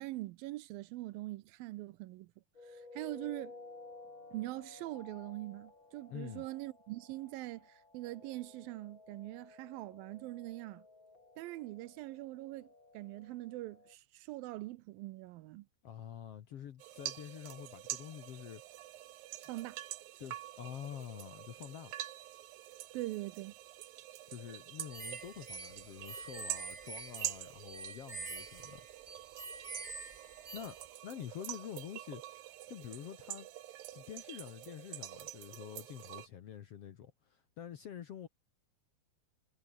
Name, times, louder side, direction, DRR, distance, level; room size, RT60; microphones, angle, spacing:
voice 1, 0.0-2.3 2.6-3.5 4.3-10.9 11.4-12.7 12.9-15.7 19.5-19.8 22.9-23.5, right 18 dB, 90° right, 2.5 m, -43 dB
sound 1, 2.6-14.0, left 3 dB, 30° left, 6.9 m, -55 dB
voice 2, 6.1-6.5 15.8-18.6 19.3-19.5 20.2-21.9 24.3-28.9 30.5-33.5 33.9-38.3, left 9 dB, 60° left, 1.7 m, -47 dB
sound 2, 16.8-36.3, right 14 dB, 75° right, 2.9 m, -46 dB
sound 3, 24.9-30.9, right 3 dB, 20° right, 1.7 m, -47 dB
omnidirectional pair, 4.2 m